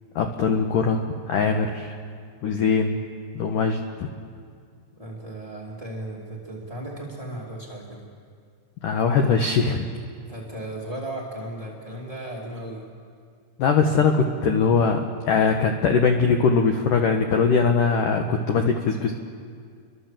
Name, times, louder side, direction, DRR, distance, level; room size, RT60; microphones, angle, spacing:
voice 1, 0.2-1.9 2.4-3.0 3.3-4.1 8.8-9.9 13.6-19.1, left 5 dB, 85° left, 4 dB, 1.8 m, -21 dB
voice 2, 4.9-8.1 10.2-12.8, right 1 dB, 15° right, -3 dB, 1.2 m, -36 dB
29.5 x 23.5 x 7.6 m, 2.2 s
omnidirectional pair, 5.6 m